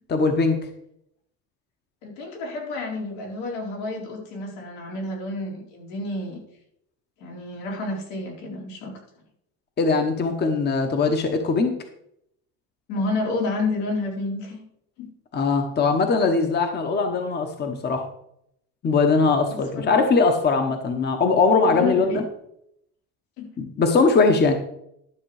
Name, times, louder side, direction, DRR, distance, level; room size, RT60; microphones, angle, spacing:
voice 1, 0.1-0.6 9.8-11.8 15.3-18.0 18.8-22.2 23.6-24.6, left 4 dB, 25° left, 6 dB, 1.1 m, -21 dB
voice 2, 2.0-6.4 7.2-8.9 12.9-14.6 15.0-15.1 19.5-19.6 19.9-20.1 21.6-22.2 23.4-23.5, left 3 dB, 80° left, -1 dB, 4.3 m, -30 dB
12.0 x 6.7 x 4.9 m, 0.74 s
cardioid pair, 140°, 38 cm